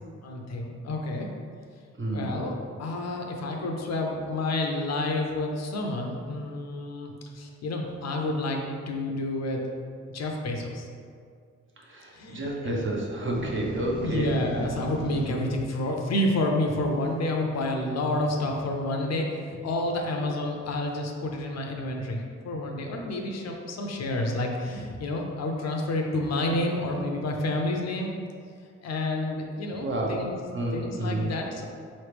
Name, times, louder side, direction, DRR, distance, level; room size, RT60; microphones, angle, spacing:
voice 1, 0.2-1.3 2.1-9.6 10.1-10.9 12.1-12.8 14.0-28.1 28.8-30.4 30.7-31.6, left 1 dB, 60° left, 1 dB, 0.6 m, -29 dB
voice 2, 2.0-2.3 11.9-14.3 15.3-15.5 29.8-30.2 30.5-31.3, right 1 dB, 40° right, -2 dB, 0.8 m, -30 dB
sound 1, 13.3-15.3, right 1 dB, 85° right, 1.1 m, -36 dB
4.2 x 3.1 x 3.3 m, 2.2 s
cardioid pair, 90°, 29 cm